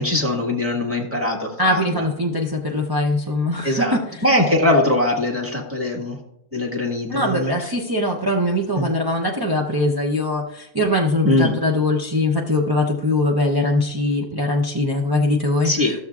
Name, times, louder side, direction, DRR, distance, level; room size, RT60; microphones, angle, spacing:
voice 1, 0.0-2.0 3.6-6.2 6.5-7.5 8.7-8.9 11.2-11.5 15.6-15.9, left 1 dB, 10° right, -1 dB, 1.6 m, -21 dB
voice 2, 1.6-4.0 7.1-15.7, left 1 dB, 30° right, 0 dB, 0.5 m, -21 dB
13.5 x 7.0 x 2.4 m, 0.80 s
omnidirectional pair, 1.5 m